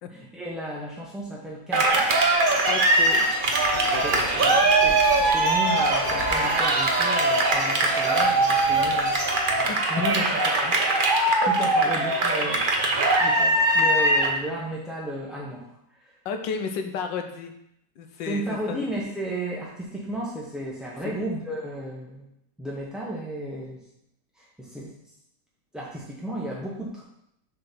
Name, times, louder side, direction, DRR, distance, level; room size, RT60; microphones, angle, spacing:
voice 1, 0.1-2.3 4.0-9.2 9.6-10.7 11.6-12.7 13.2-16.2 18.3-22.3 22.6-23.8 24.3-25.1 25.7-27.0, right 1 dB, ahead, -6 dB, 0.5 m, -34 dB
Cheering, 1.7-14.4, right 2 dB, 40° right, 0.8 m, -21 dB
sound 1, 1.9-9.7, left 1 dB, 40° left, 1.8 m, -37 dB
voice 2, 2.7-3.3 3.7-4.3 9.7-10.0 11.4-11.5 16.2-17.5 18.0-18.8 21.0-21.1, left 6 dB, 90° left, 6 dB, 1.5 m, -32 dB
6.8 x 3.8 x 5.8 m, 0.77 s
omnidirectional pair, 1.9 m